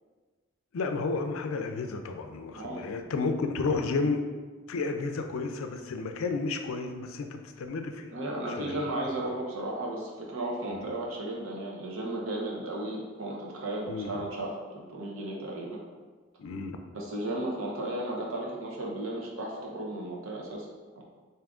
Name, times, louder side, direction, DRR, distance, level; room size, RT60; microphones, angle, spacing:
voice 1, 0.7-4.2 4.7-8.1 8.6-8.8 10.7-10.8 13.9-14.2 16.4-16.8, left 4 dB, 80° left, 6 dB, 0.4 m, -32 dB
voice 2, 2.5-2.9 8.1-15.8 16.9-20.7, right 1 dB, 80° right, -2 dB, 0.8 m, -34 dB
3.5 x 2.7 x 3.6 m, 1.4 s
head